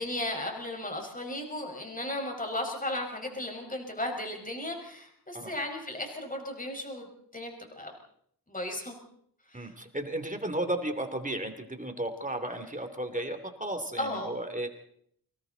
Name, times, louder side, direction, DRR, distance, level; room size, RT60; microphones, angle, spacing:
voice 1, 0.0-7.1 7.3-7.9 8.5-8.9 9.5-9.7 14.0-14.3, left 1 dB, 20° left, 2 dB, 5.1 m, -35 dB
voice 2, 9.5-14.7, right 1 dB, 20° right, 7 dB, 2.8 m, -34 dB
30.0 x 25.0 x 4.0 m, 0.68 s
wide cardioid pair, 100°, 40 cm